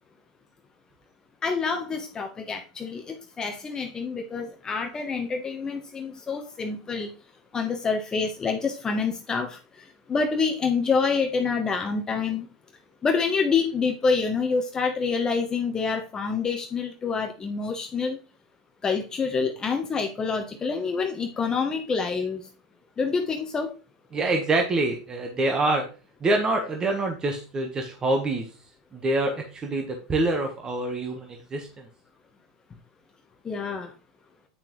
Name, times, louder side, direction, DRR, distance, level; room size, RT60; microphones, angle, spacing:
voice 1, 1.4-7.1 7.5-12.5 13.0-18.2 18.8-22.4 23.0-23.7 33.4-33.9, left 5 dB, 20° left, 3 dB, 1.0 m, -27 dB
voice 2, 24.1-25.8 26.2-28.5 28.9-31.9, right 2 dB, 20° right, 3 dB, 1.2 m, -26 dB
8.8 x 5.8 x 3.1 m, 0.35 s
supercardioid pair, 120°, 3 cm